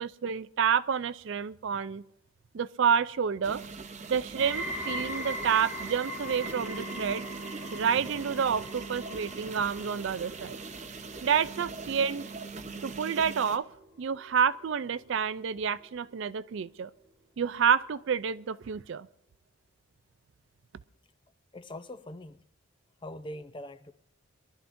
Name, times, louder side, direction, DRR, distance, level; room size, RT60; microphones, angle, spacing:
voice 1, 0.0-2.0 2.5-3.6 4.1-7.2 7.7-10.6 11.2-12.2 12.8-13.7 14.0-16.9 17.4-19.1, right 7 dB, 55° right, 0.4 m, -29 dB
sound 1, 3.4-13.6, right 4 dB, 30° right, 0.8 m, -41 dB
sound 2, 4.4-15.5 15.8-16.3 17.0-17.1, equal, 5° right, 1.1 m, -41 dB
voice 2, 21.5-22.4 23.0-23.9, left 1 dB, 20° left, 0.6 m, -42 dB
23.0 x 12.0 x 2.6 m
head